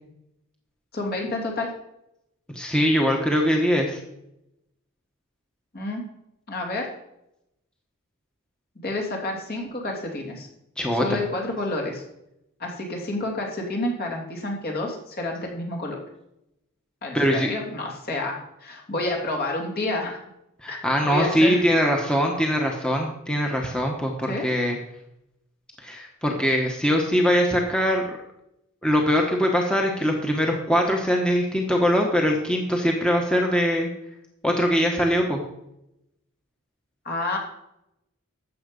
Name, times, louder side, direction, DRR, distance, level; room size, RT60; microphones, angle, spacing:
voice 1, 0.9-1.7 5.7-6.0 6.5-6.9 8.8-10.5 11.0-12.0 12.6-16.0 17.0-20.2 20.7-21.6 24.3-24.5 37.0-37.4, left 2 dB, 45° left, 0 dB, 3.0 m, -29 dB
voice 2, 2.5-4.0 10.8-11.2 17.1-17.5 20.6-24.8 25.8-28.2 28.8-33.9 34.4-35.4, equal, 5° left, 0 dB, 1.2 m, -22 dB
13.0 x 7.9 x 5.3 m, 0.84 s
head